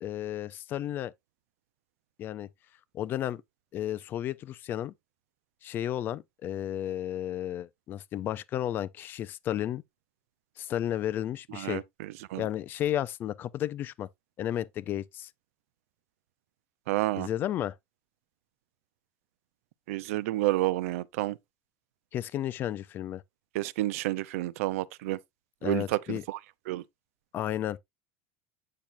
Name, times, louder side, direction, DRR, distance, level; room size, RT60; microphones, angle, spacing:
voice 1, 0.0-1.1 2.2-2.5 2.9-3.4 3.7-4.9 5.6-9.8 10.6-11.8 12.4-14.1 14.4-15.3 17.2-17.8 22.1-23.2 25.6-26.2 27.3-27.8, left 12 dB, 25° left, 0.4 m, -33 dB
voice 2, 16.9-17.3 19.9-21.4 23.5-25.2 25.6-26.4 26.7-26.8, right 17 dB, 80° right, 0.6 m, -29 dB
8.7 x 6.0 x 2.5 m
cardioid pair, 175°, 8 cm